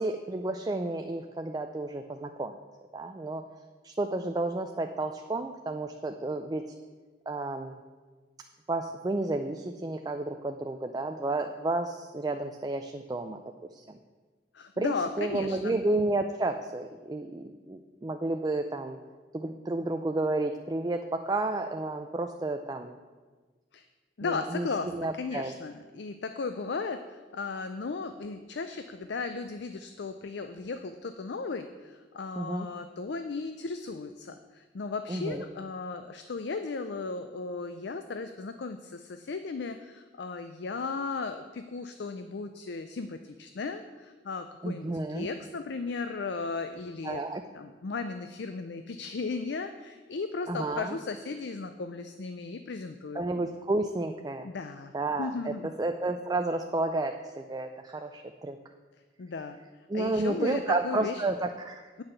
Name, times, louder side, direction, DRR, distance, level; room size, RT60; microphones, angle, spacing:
voice 1, 0.0-2.6 2.9-3.4 3.8-6.6 7.3-7.8 8.7-13.4 13.7-13.8 14.8-19.0 19.3-23.0 24.2-25.5 32.4-32.7 35.1-35.4 44.6-45.3 47.0-47.4 50.5-51.0 53.1-54.5 54.9-58.6 59.9-61.9, right 2 dB, 20° right, 5 dB, 0.4 m, -31 dB
voice 2, 14.5-15.8 23.7-23.8 24.2-47.2 47.5-53.2 54.4-54.9 55.2-55.7 59.2-59.6 59.9-61.2 62.0-62.1, left 4 dB, 65° left, 8 dB, 0.5 m, -36 dB
8.7 x 5.7 x 8.0 m, 1.3 s
head